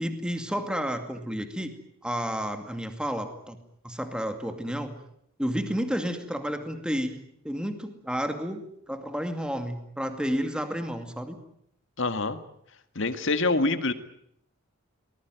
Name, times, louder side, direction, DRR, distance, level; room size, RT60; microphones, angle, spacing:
voice 1, 0.0-1.7 2.0-3.6 3.8-4.9 5.4-7.2 7.4-11.4, equal, 5° right, 7 dB, 2.3 m, -31 dB
voice 2, 12.0-12.4 13.0-13.9, left 3 dB, 60° left, 10 dB, 1.9 m, -25 dB
24.0 x 20.0 x 9.3 m, 0.72 s
head